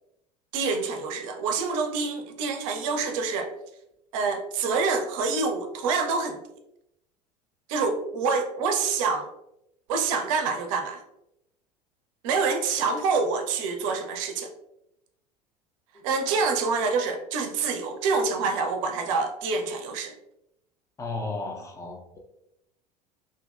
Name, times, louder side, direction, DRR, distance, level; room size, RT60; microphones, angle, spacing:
voice 1, 0.5-3.5 4.1-6.4 7.7-9.3 9.9-11.0 12.2-14.5 16.0-20.1, right 4 dB, 50° right, 0.5 m, -26 dB
voice 2, 21.0-22.2, left 3 dB, 15° left, 0.4 m, -34 dB
2.6 x 2.6 x 2.3 m
figure-of-eight pair, 75°, 21 cm